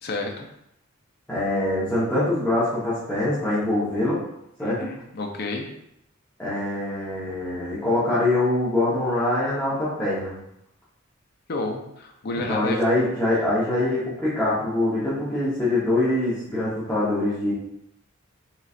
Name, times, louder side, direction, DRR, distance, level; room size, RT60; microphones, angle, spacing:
voice 1, 0.0-0.5 4.6-5.7 11.5-12.8, left 2 dB, 50° left, 2 dB, 0.5 m, -30 dB
voice 2, 1.3-4.2 4.6-4.9 6.4-10.3 12.5-17.5, left 1 dB, 10° left, -11 dB, 0.9 m, -24 dB
3.8 x 3.1 x 2.5 m, 0.79 s
head